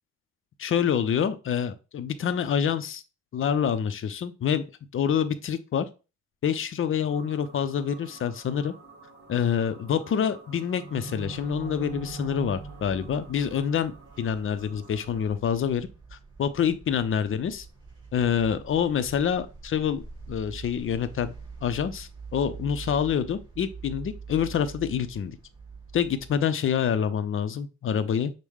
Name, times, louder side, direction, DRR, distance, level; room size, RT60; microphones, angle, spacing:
voice 1, 0.6-3.0 3.3-4.6 4.9-5.8 6.4-8.7 9.3-15.9 16.4-17.7 18.1-21.3 21.6-25.4 25.9-28.3, left 8 dB, 45° left, 12 dB, 0.6 m, -27 dB
sound 1, 7.0-15.3, right 3 dB, 35° right, 1.9 m, -43 dB
sound 2, 11.2-26.4, right 5 dB, 15° right, 2.5 m, -45 dB
6.2 x 2.1 x 3.5 m, 0.31 s
cardioid pair, 90°, 30 cm